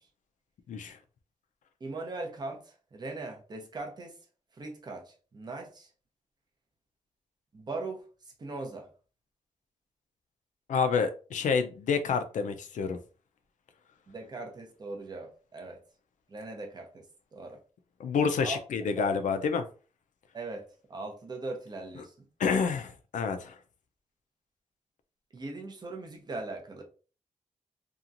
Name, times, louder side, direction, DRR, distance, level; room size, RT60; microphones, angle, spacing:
voice 1, 0.7-1.0 10.7-13.0 18.0-19.6 22.4-23.6, left 5 dB, 80° left, 0.5 m, -28 dB
voice 2, 1.8-4.2 4.6-5.9 7.5-8.0 8.4-8.9 14.1-15.8 16.3-17.1 17.3-17.6 18.4-18.6 19.0-19.1 20.3-22.3 25.3-26.8, right 2 dB, 35° right, 0.7 m, -40 dB
2.8 x 2.4 x 2.5 m
wide cardioid pair, 135°, 13 cm